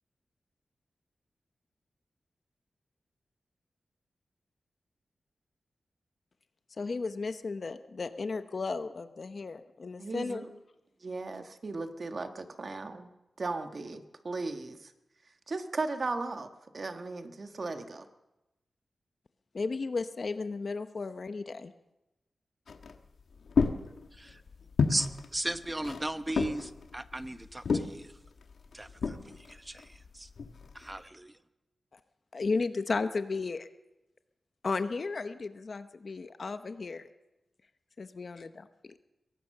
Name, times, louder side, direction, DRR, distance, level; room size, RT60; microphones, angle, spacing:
voice 1, 6.8-10.4 19.5-21.7 32.3-33.7 34.6-37.1 38.0-38.7, left 4 dB, 50° left, 10 dB, 0.9 m, -34 dB
voice 2, 10.0-10.5 11.0-13.1 13.4-14.9 15.5-18.1, right 3 dB, 45° right, 7 dB, 1.6 m, -36 dB
sound 1, 22.7-31.0, left 5 dB, 80° left, 1.6 m, -33 dB
voice 3, 24.1-24.4 24.9-28.2 28.7-30.3 30.7-31.4, right 1 dB, 15° right, 11 dB, 0.9 m, -37 dB
22.5 x 17.5 x 6.7 m, 0.97 s
wide cardioid pair, 120°, 0 cm